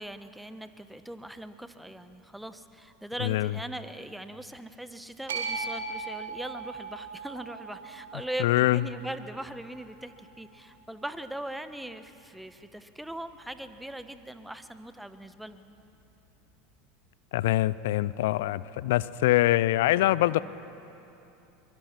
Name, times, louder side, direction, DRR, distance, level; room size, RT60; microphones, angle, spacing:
voice 1, 0.0-15.8, right 1 dB, 5° right, 11 dB, 1.1 m, -40 dB
voice 2, 3.2-3.5 8.4-8.8 17.3-20.4, left 16 dB, 70° left, 19 dB, 0.5 m, -24 dB
sound 1, 5.3-11.5, right 4 dB, 80° right, 3.0 m, -40 dB
23.0 x 22.5 x 6.0 m, 2.9 s
hypercardioid pair, 85°, 0 cm